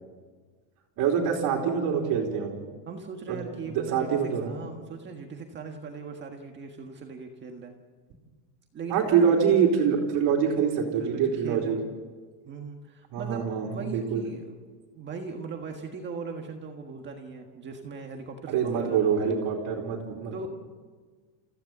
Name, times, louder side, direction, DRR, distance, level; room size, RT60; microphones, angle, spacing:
voice 1, 1.0-2.5 3.3-4.5 8.9-11.8 13.1-14.2 18.5-20.5, right 7 dB, 40° right, -1 dB, 3.4 m, -25 dB
voice 2, 2.9-7.7 8.7-9.2 10.4-10.6 11.0-11.9 12.4-14.5 14.9-19.3 20.3-20.5, right 4 dB, 20° right, 3 dB, 1.6 m, -39 dB
30.0 x 15.5 x 7.3 m, 1.5 s
cardioid pair, 170°, 49 cm